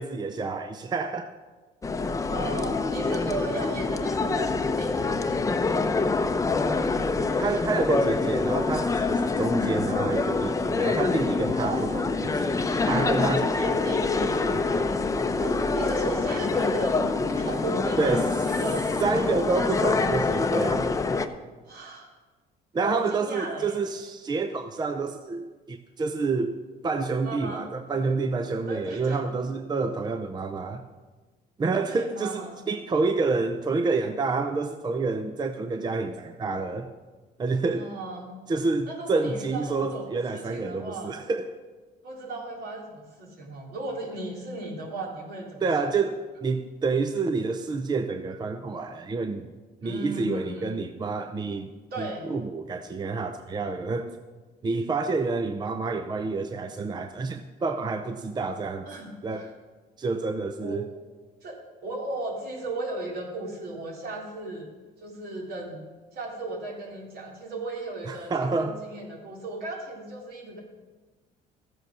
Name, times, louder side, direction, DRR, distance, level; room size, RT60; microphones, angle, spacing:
voice 1, 0.0-1.3 7.4-13.7 14.2-14.6 18.0-18.3 19.0-20.9 22.7-26.5 26.8-30.8 31.6-36.9 37.4-37.9 38.5-41.6 45.6-49.5 49.8-51.7 52.0-54.2 54.6-58.9 59.2-59.5 60.0-60.9 68.1-68.8, right 3 dB, 25° right, 0.6 m, -28 dB
sound 1, 1.8-21.3, left 3 dB, 20° left, 0.7 m, -26 dB
voice 2, 2.3-5.6 11.6-11.9 13.6-14.4 15.4-17.1 17.4-18.8 21.6-22.1 22.8-23.8 27.2-27.7 28.7-29.2 31.9-32.6 37.7-38.3 38.9-41.2 42.0-45.9 49.8-50.8 51.9-52.3 58.9-59.5 60.6-60.8 61.4-64.7 65.0-65.8 66.1-70.6, right 2 dB, 65° right, 3.7 m, -36 dB
14.0 x 7.9 x 6.3 m
cardioid pair, 110°, 17 cm